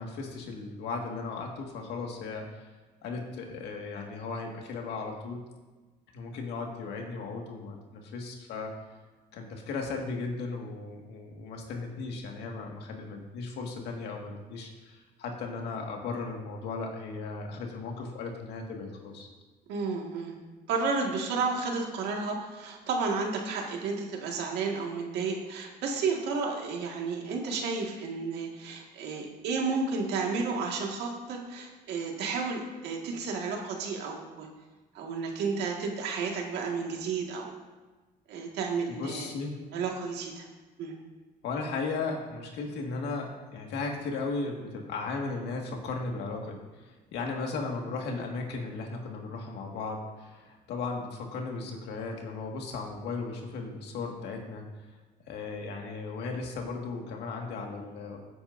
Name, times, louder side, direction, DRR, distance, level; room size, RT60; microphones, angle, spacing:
voice 1, 0.0-2.6 3.0-5.4 6.1-8.7 9.3-19.3 38.9-39.6 41.4-54.7 55.3-58.2, left 4 dB, 80° left, 1 dB, 1.9 m, -36 dB
voice 2, 19.7-20.3 20.7-34.5 34.9-37.5 38.3-39.3 39.7-40.5 40.8-40.9, right 4 dB, 80° right, 0 dB, 1.9 m, -32 dB
15.5 x 8.7 x 2.7 m, 1.2 s
cardioid pair, 110°, 17 cm